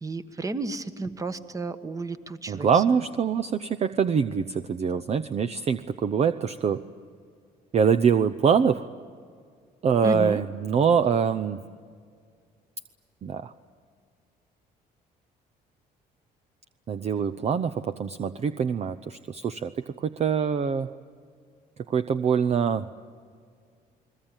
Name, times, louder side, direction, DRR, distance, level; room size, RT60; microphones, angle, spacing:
voice 1, 0.0-3.0 10.0-10.4, right 2 dB, 20° right, 11 dB, 1.4 m, -32 dB
voice 2, 2.5-6.8 7.7-8.9 9.8-11.6 13.2-13.5 16.9-20.9 21.9-22.9, right 6 dB, 40° right, 9 dB, 0.7 m, -24 dB
29.5 x 21.0 x 9.0 m, 2.1 s
cardioid pair, 110°, 17 cm